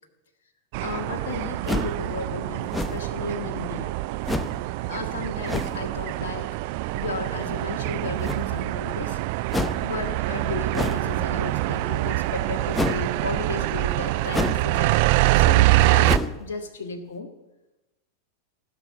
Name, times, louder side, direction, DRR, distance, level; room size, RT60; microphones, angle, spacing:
sound 1, 0.7-16.2, right 17 dB, 45° right, 0.4 m, -25 dB
voice 1, 0.8-3.9 4.9-6.5 6.9-9.2 9.8-15.0 15.3-17.3, left 4 dB, 60° left, 4 dB, 1.6 m, -34 dB
sound 2, 1.7-2.0 2.7-3.2 4.2-4.6 5.5-5.8 8.2-8.7 9.5-9.9 10.7-11.1 12.7-13.1 14.3-14.7 15.0-15.1 16.0-16.4, left 2 dB, 10° left, 0.8 m, -28 dB
17.0 x 7.1 x 9.1 m, 1.0 s
figure-of-eight pair, 90°, 0 cm